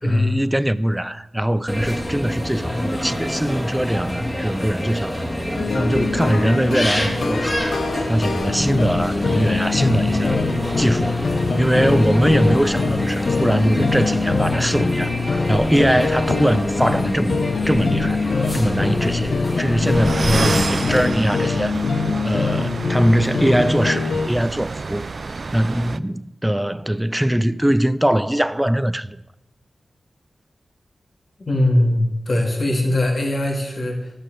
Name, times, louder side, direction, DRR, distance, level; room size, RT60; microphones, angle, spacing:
voice 1, 0.0-5.2 5.7-7.6 8.1-10.4 10.8-11.3 11.6-15.1 15.5-18.2 18.5-21.8 22.2-25.0 25.5-29.2, right 1 dB, 10° right, 0.6 m, -21 dB
sound 1, 1.7-21.1, equal, 15° left, 2.3 m, -26 dB
sound 2, 5.6-24.3, left 4 dB, 70° left, 0.7 m, -23 dB
sound 3, 19.9-26.0, right 4 dB, 60° right, 0.4 m, -28 dB
voice 2, 31.4-34.1, left 1 dB, 55° left, 2.4 m, -20 dB
12.0 x 6.6 x 7.6 m
cardioid pair, 45°, 0 cm